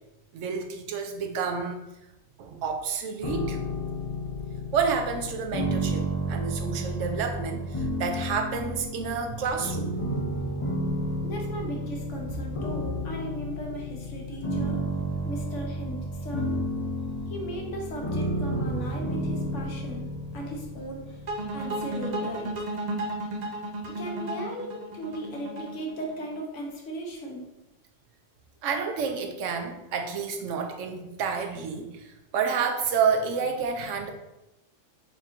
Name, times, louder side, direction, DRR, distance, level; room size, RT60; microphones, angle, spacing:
voice 1, 0.3-1.8 2.4-3.6 4.7-9.9 28.6-34.1, right 5 dB, 75° right, 5 dB, 0.9 m, -29 dB
sound 1, 3.2-22.2, equal, 35° left, 0.5 m, -32 dB
voice 2, 11.2-14.8 15.2-16.6 17.3-20.1 20.3-21.2 21.5-22.5 23.9-27.5, right 1 dB, 70° left, 0 dB, 1.2 m, -37 dB
sound 2, 21.3-26.4, right 1 dB, 50° right, 0.5 m, -33 dB
4.1 x 2.4 x 4.3 m, 0.94 s
omnidirectional pair, 1.3 m